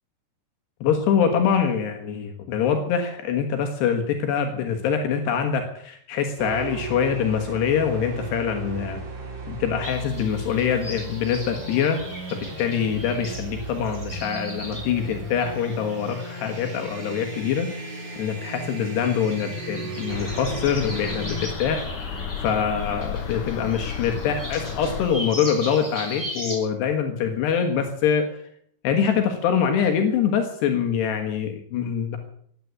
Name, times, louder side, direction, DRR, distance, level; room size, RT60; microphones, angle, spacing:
voice 1, 0.8-9.0 9.5-12.0 12.3-17.7 18.2-21.9 22.4-28.3 28.8-32.2, left 7 dB, 80° left, 5 dB, 3.5 m, -24 dB
sound 1, 6.4-21.5, right 2 dB, 45° right, 3.5 m, -35 dB
sound 2, 9.8-26.6, equal, 5° left, 4.8 m, -40 dB
sound 3, 20.1-25.1, left 6 dB, 60° left, 2.5 m, -33 dB
16.0 x 9.6 x 8.5 m, 0.64 s
omnidirectional pair, 4.9 m